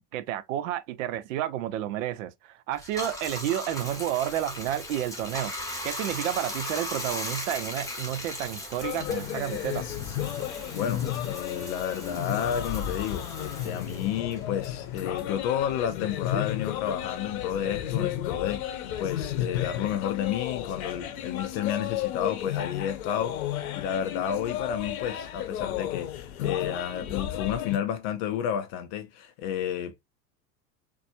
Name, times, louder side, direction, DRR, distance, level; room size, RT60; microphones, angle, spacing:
voice 1, 0.1-5.5 5.8-9.9, right 12 dB, 50° right, 0.6 m, -31 dB
Bathtub (filling or washing), 2.8-15.6 15.9-17.7, left 1 dB, 5° left, 1.2 m, -38 dB
sound 1, 8.8-27.8, left 11 dB, 60° left, 0.8 m, -33 dB
voice 2, 10.7-30.0, left 9 dB, 30° left, 0.4 m, -31 dB
4.0 x 2.3 x 2.7 m
figure-of-eight pair, 85°, 48 cm